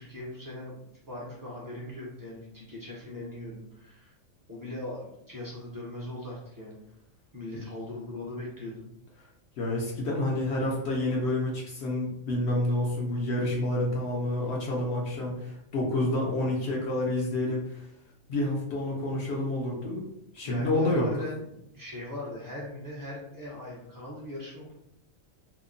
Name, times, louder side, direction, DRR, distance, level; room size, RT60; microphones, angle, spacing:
voice 1, 0.0-4.1 4.5-6.8 7.3-8.8 15.0-15.5 20.4-24.8, left 1 dB, 25° right, -5 dB, 0.4 m, -40 dB
voice 2, 9.6-17.8 18.3-20.0 20.3-21.1, left 1 dB, 65° left, -3 dB, 0.7 m, -28 dB
2.8 x 2.0 x 2.5 m, 0.80 s
omnidirectional pair, 1.4 m